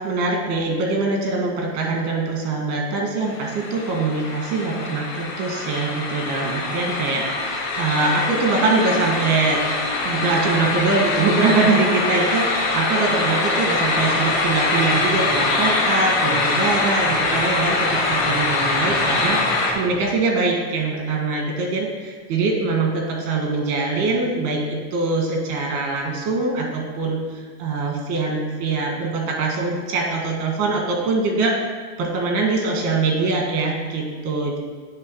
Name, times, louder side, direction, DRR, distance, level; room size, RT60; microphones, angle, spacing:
voice 1, 0.0-9.6 10.0-19.4 19.7-31.6 32.0-34.6, right 3 dB, 40° right, 1 dB, 1.9 m, -23 dB
sound 1, 3.2-19.7, left 3 dB, 75° left, 1.5 m, -23 dB
Organ, 7.9-20.1, equal, 5° right, 1.3 m, -39 dB
9.5 x 3.7 x 4.8 m, 1.5 s
supercardioid pair, 145°, 49 cm